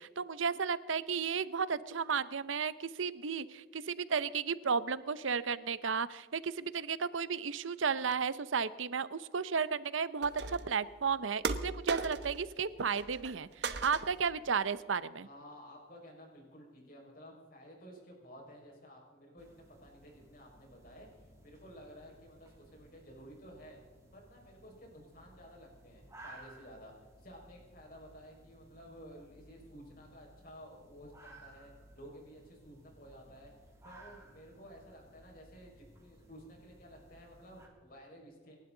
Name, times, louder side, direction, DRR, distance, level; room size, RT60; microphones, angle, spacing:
voice 1, 0.0-15.3, right 6 dB, 90° right, 16 dB, 0.7 m, -33 dB
sound 1, 10.2-10.8 11.4-12.5 12.8-13.4 13.6-14.3, right 4 dB, 60° right, 1.1 m, -37 dB
voice 2, 15.2-23.8 24.1-26.9 27.2-33.5 33.8-38.6, equal, 45° left, 0 dB, 5.3 m, -53 dB
sound 2, 19.4-37.7, right 2 dB, 15° right, 2.9 m, -58 dB
29.0 x 12.0 x 3.9 m, 1.4 s
head